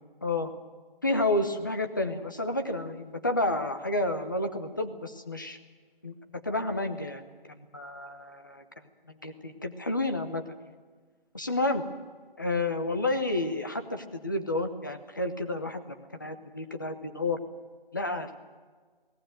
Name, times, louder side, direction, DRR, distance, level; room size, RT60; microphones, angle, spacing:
voice 1, 0.2-0.5 1.0-5.6 6.0-6.1 6.4-8.6 9.1-10.4 11.3-11.9 12.4-17.4 17.9-18.3, left 2 dB, 20° left, 7 dB, 1.0 m, -30 dB
22.0 x 18.0 x 9.2 m, 1.5 s
figure-of-eight pair, 170°, 29 cm